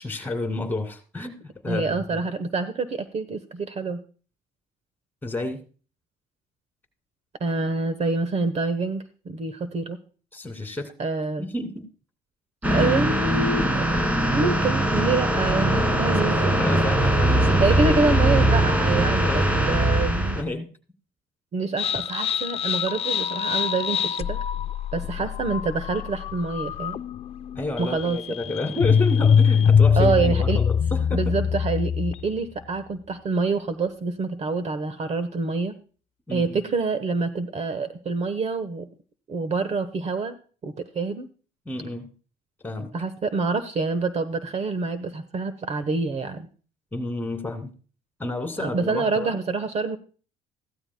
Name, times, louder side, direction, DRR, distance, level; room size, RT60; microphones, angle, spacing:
voice 1, 0.0-2.2 5.2-5.6 10.3-10.9 11.4-11.9 16.1-17.8 19.2-19.5 20.0-20.1 20.3-20.7 27.5-31.3 36.3-36.7 41.7-42.1 42.6-42.9 46.9-47.7 48.2-49.4, left 2 dB, 10° left, 5 dB, 2.5 m, -31 dB
voice 2, 1.7-4.0 7.4-10.0 11.0-11.5 12.7-13.8 14.3-16.6 17.6-20.4 21.5-24.4 24.9-27.0 27.8-28.2 30.0-30.6 31.1-35.7 36.3-38.9 39.3-40.3 40.6-41.3 42.9-46.5 48.6-50.0, right 3 dB, 40° right, 12 dB, 1.1 m, -26 dB
sound 1, 12.6-20.4, right 1 dB, 10° right, 1.7 m, -21 dB
sound 2, 21.8-32.4, left 7 dB, 35° left, 0.4 m, -23 dB
15.5 x 12.5 x 2.2 m, 0.39 s
cardioid pair, 110°, 17 cm